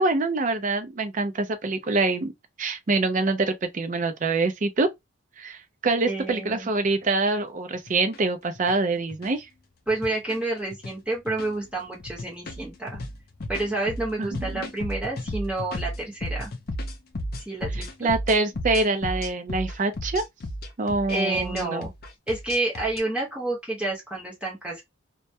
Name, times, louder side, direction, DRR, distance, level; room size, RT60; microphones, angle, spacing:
voice 1, 0.0-2.3 2.6-4.9 5.4-9.5 14.2-14.7 18.0-20.2 20.8-21.9, right 3 dB, 35° right, 0.4 m, -25 dB
voice 2, 6.1-6.7 9.9-13.0 13.5-16.5 17.5-18.1 21.1-21.9 22.3-24.8, right 2 dB, 5° right, 0.9 m, -29 dB
sound 1, 6.9-7.0 7.7-8.2 8.5-8.7 9.1-9.3 9.9-10.4 10.7-10.9 11.3-11.6 12.0-23.0, left 1 dB, 45° left, 0.4 m, -34 dB
2.2 x 2.1 x 2.6 m
head